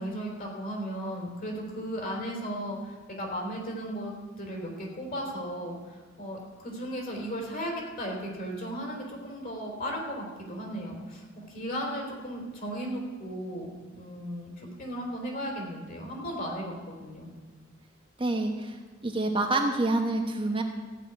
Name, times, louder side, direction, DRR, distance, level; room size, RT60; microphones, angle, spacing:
voice 1, 0.0-7.7 8.0-17.3, equal, 45° left, -1 dB, 3.6 m, -36 dB
voice 2, 18.2-18.7 19.0-20.6, right 2 dB, 25° right, 2 dB, 1.0 m, -27 dB
15.0 x 5.7 x 9.2 m, 1.3 s
head